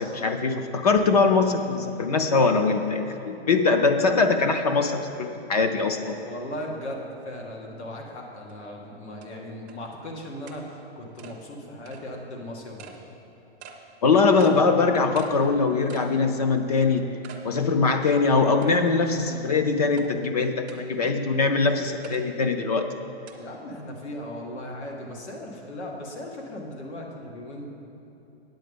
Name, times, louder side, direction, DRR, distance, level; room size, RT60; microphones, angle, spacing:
voice 1, 0.0-6.1 14.0-17.1 17.4-22.9, left 4 dB, 40° left, 7 dB, 0.4 m, -22 dB
voice 2, 6.0-12.9 23.4-27.7, left 1 dB, 90° left, 0 dB, 1.9 m, -37 dB
sound 1, 8.5-8.6 9.2-9.3 9.7-9.8 10.5-10.6 11.2-11.4 11.9-12.0 12.8-13.0 13.6-13.8 14.4-14.6 15.2-15.3 15.9-16.1 16.6-16.7 17.2-17.4 17.9-18.0 18.6-19.0 20.0-20.1 20.7-20.8 22.0-22.2 23.3-23.4, right 7 dB, 20° right, 0.5 m, -44 dB
9.0 x 8.5 x 5.2 m, 3.0 s
hypercardioid pair, 170°, 33 cm